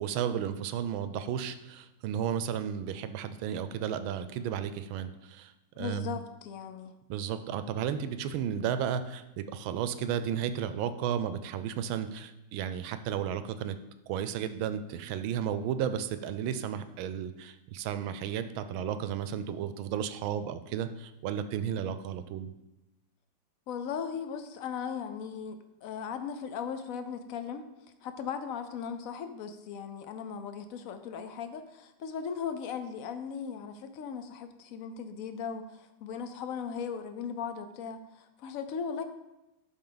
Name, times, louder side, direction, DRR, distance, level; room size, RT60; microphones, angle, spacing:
voice 1, 0.0-6.2 7.1-13.8 14.1-22.5, right 9 dB, 90° right, 11 dB, 1.4 m, -33 dB
voice 2, 5.8-6.9 23.7-27.6 28.0-39.0, left 7 dB, 75° left, 8 dB, 0.8 m, -38 dB
11.5 x 4.2 x 3.9 m, 0.95 s
omnidirectional pair, 2.1 m